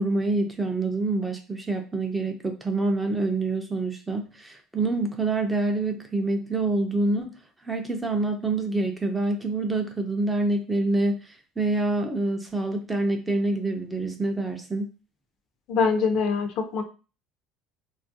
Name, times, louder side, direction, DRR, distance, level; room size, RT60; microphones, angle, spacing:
voice 1, 0.0-7.4 7.6-14.9, right 2 dB, 10° right, 4 dB, 0.4 m, -26 dB
voice 2, 15.7-16.8, left 5 dB, 50° left, 7 dB, 0.5 m, -24 dB
3.2 x 2.3 x 2.6 m, 0.32 s
cardioid pair, 160°, 0 cm